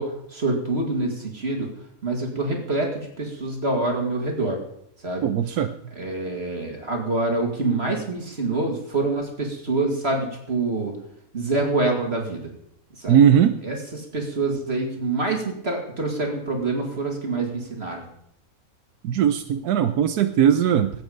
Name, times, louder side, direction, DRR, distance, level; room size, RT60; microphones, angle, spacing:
voice 1, 0.0-1.7 2.0-4.6 5.0-5.6 5.9-11.0 11.3-12.5 13.0-13.2 13.6-18.0, right 2 dB, 45° right, 2 dB, 2.5 m, -26 dB
voice 2, 5.2-5.7 13.1-13.6 19.0-20.9, right 9 dB, 85° right, 7 dB, 1.2 m, -19 dB
19.5 x 8.7 x 5.2 m, 0.73 s
omnidirectional pair, 1.6 m